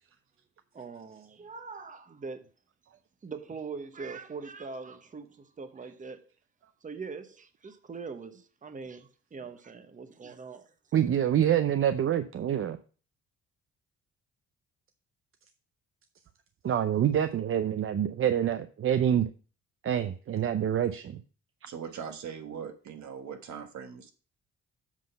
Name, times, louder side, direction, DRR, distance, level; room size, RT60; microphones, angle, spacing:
voice 1, 0.7-2.5 3.2-6.3 6.8-10.7, right 4 dB, 25° right, 0.9 m, -42 dB
voice 2, 10.9-12.8 16.6-19.3 19.8-21.2, right 10 dB, 45° right, 0.6 m, -26 dB
voice 3, 21.7-24.1, right 7 dB, 70° right, 1.4 m, -40 dB
7.5 x 3.8 x 6.6 m
cardioid pair, 90°, 30 cm